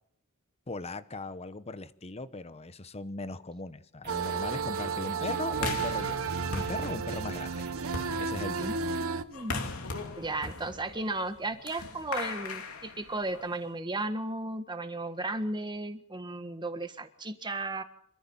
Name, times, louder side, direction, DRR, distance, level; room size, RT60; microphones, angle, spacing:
voice 1, 0.7-7.6 8.2-8.9, left 2 dB, 30° left, 13 dB, 1.0 m, -39 dB
sound 1, 4.0-9.0, right 5 dB, 50° right, 2.3 m, -48 dB
sound 2, 4.1-9.2, right 5 dB, 75° right, 0.9 m, -32 dB
sound 3, 5.6-13.7, left 3 dB, 85° left, 2.8 m, -39 dB
voice 2, 8.6-9.6 10.2-17.8, right 2 dB, 20° right, 8 dB, 1.6 m, -35 dB
26.5 x 14.0 x 7.2 m, 0.67 s
head